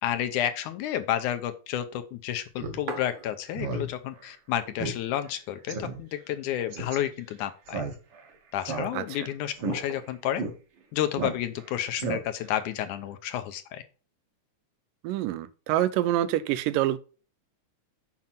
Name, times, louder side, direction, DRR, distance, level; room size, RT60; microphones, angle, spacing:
voice 1, 0.0-7.8 8.5-10.4 10.9-13.8, left 11 dB, 80° left, 2.0 m, -31 dB
sound 1, 2.4-3.9 4.2-4.3 4.5-5.3 5.8-5.9 6.3-7.2 7.9-8.5 9.7-10.3 11.4-11.9, right 4 dB, 65° right, 2.8 m, -43 dB
Speech synthesizer, 2.6-2.8 3.2-3.3 3.5-3.9 4.2-4.3 4.8-5.0 5.3-5.4 5.7-6.0 6.7-7.0 7.7-8.2 8.6-9.2 9.6-9.8 10.4-10.5 11.2-11.6 12.0-12.5, right 3 dB, 50° right, 1.6 m, -32 dB
voice 2, 15.0-17.0, right 13 dB, 85° right, 2.3 m, -26 dB
7.4 x 5.3 x 5.7 m
omnidirectional pair, 3.9 m